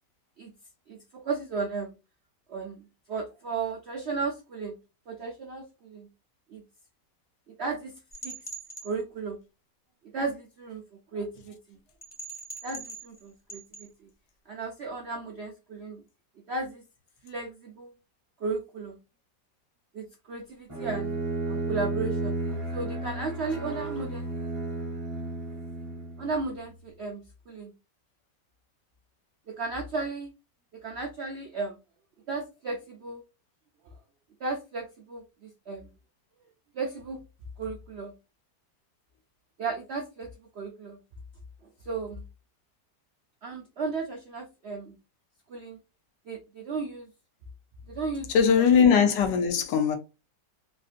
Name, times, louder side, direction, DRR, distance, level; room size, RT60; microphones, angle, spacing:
voice 1, 0.9-1.9 2.5-2.8 3.1-4.8 5.1-6.1 6.5-6.6 7.6-8.4 8.8-9.4 10.1-10.8 11.1-11.8 12.6-14.1 14.5-16.0 16.5-16.8 17.2-17.9 18.4-19.0 19.9-21.1 21.5-22.4 22.7-24.3 26.2-27.7 29.5-30.3 30.8-31.7 32.3-33.2 34.4-35.9 36.7-37.2 37.6-38.1 39.6-40.3 40.5-41.0 41.9-42.2 43.4-45.0 45.5-45.8 46.3-47.1 47.9-48.6 49.0-49.1, right 4 dB, 75° right, 0.6 m, -34 dB
sound 1, 8.1-8.9 12.0-13.2 13.5-13.9, right 2 dB, 30° left, 0.8 m, -41 dB
Bowed string instrument, 20.7-26.5, right 2 dB, 30° right, 0.6 m, -33 dB
voice 2, 48.3-50.0, left 6 dB, 80° left, 1.4 m, -20 dB
3.5 x 2.5 x 2.4 m
omnidirectional pair, 1.9 m